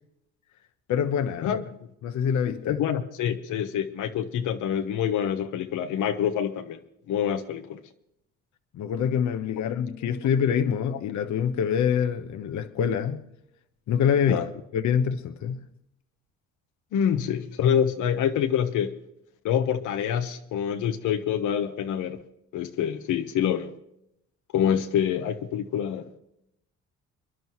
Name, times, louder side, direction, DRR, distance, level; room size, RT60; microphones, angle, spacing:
voice 1, 0.9-1.6 2.0-2.8 8.7-13.2 13.9-14.4 14.7-15.7, left 8 dB, 70° left, 1.1 m, -25 dB
voice 2, 2.6-6.8 7.1-7.8 14.3-14.5 16.9-18.9 19.4-22.2 22.5-23.7 24.5-26.1, left 9 dB, 85° left, 1.2 m, -26 dB
29.5 x 11.0 x 3.1 m
cardioid pair, 90°, 30 cm